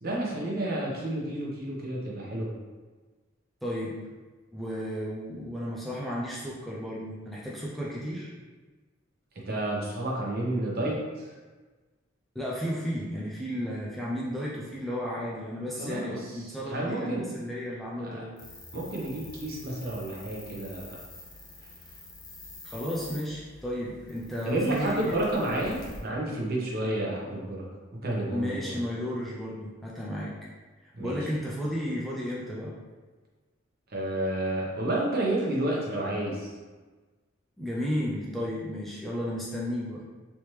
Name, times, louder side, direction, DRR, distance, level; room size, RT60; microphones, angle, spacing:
voice 1, 0.0-2.5 9.5-11.3 15.8-16.4 16.7-17.4 18.0-18.2 18.7-21.0 24.4-27.6 27.9-28.7 30.9-31.2 33.9-36.5, right 1 dB, 50° right, -4 dB, 0.8 m, -30 dB
voice 2, 3.6-4.0 4.5-8.3 12.3-18.3 22.6-25.2 28.3-30.3 31.0-32.7 37.6-40.1, equal, ahead, -6 dB, 0.4 m, -33 dB
sound 1, 18.4-26.0, left 2 dB, 20° left, 0.8 m, -47 dB
3.3 x 2.9 x 3.1 m, 1.3 s
head